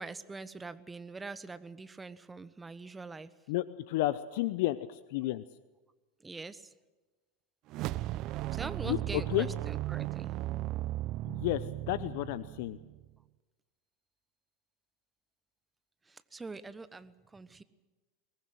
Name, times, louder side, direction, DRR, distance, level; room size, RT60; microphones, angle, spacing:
voice 1, 0.0-3.3 6.2-6.7 8.5-10.3 16.1-17.6, right 3 dB, 15° right, 14 dB, 1.2 m, -44 dB
voice 2, 3.5-5.4 8.8-9.5 11.3-12.8, left 16 dB, 65° left, 15 dB, 0.7 m, -32 dB
sound 1, 7.7-13.1, right 16 dB, 50° right, 0.7 m, -36 dB
22.5 x 19.0 x 7.7 m, 1.2 s
hypercardioid pair, 90°, 0 cm